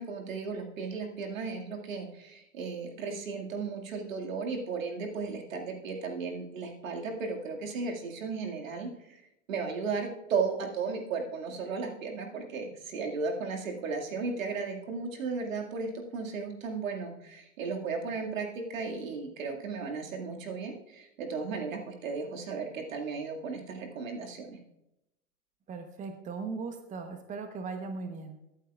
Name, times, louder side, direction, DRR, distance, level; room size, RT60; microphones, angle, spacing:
voice 1, 0.0-9.2 9.5-24.6, right 4 dB, 80° right, 1 dB, 2.2 m, -35 dB
voice 2, 25.7-28.4, right 4 dB, 20° right, 6 dB, 1.0 m, -38 dB
23.5 x 8.5 x 2.4 m, 0.87 s
hypercardioid pair, 120°, 39 cm